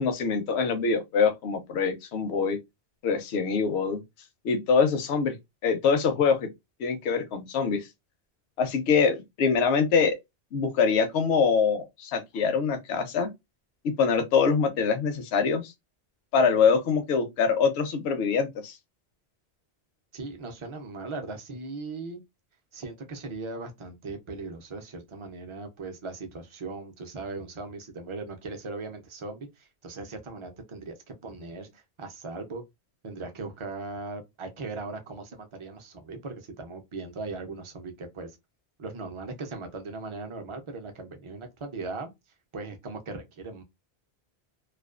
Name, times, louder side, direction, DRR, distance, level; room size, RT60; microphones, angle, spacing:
voice 1, 0.0-2.6 3.0-4.0 4.4-5.4 5.6-6.4 6.8-7.9 8.6-10.2 10.5-13.3 13.8-15.7 16.3-18.8, left 5 dB, 80° left, 0.8 m, -24 dB
voice 2, 20.1-22.2 22.7-32.6 33.0-38.4 38.8-42.1 42.5-43.6, right 3 dB, 40° right, 0.4 m, -38 dB
2.4 x 2.2 x 2.3 m
omnidirectional pair, 1.1 m